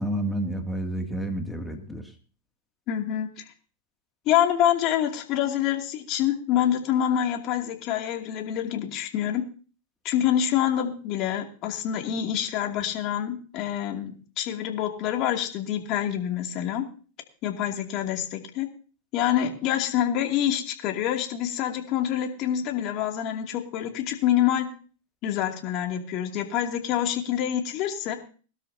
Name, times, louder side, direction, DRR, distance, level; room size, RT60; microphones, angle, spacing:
voice 1, 0.0-2.0, right 1 dB, 5° left, 3 dB, 2.4 m, -30 dB
voice 2, 2.9-3.4 4.3-9.4 10.0-16.8 17.4-18.7 19.1-24.7 25.2-28.1, left 10 dB, 45° left, 3 dB, 2.6 m, -26 dB
20.5 x 12.5 x 2.8 m, 0.39 s
hypercardioid pair, 120°, 0 cm